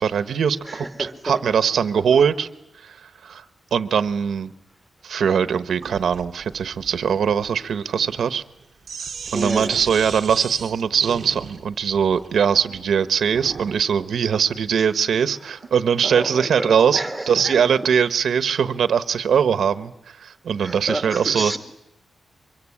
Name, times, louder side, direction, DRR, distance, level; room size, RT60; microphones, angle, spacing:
voice 1, 0.0-0.9 1.2-2.5 2.8-3.4 3.7-4.5 5.0-8.4 9.3-17.0 17.3-21.5, right 7 dB, 80° right, 12 dB, 1.0 m, -21 dB
voice 2, 0.6-1.4 2.0-2.2 9.3-9.9 15.4-15.5 16.0-17.9 20.6-21.6, right 1 dB, 5° right, 6 dB, 2.3 m, -30 dB
Sink (filling or washing), 5.8-13.8, right 5 dB, 50° right, 1.0 m, -37 dB
24.0 x 23.0 x 9.8 m, 0.85 s
wide cardioid pair, 165°, 0 cm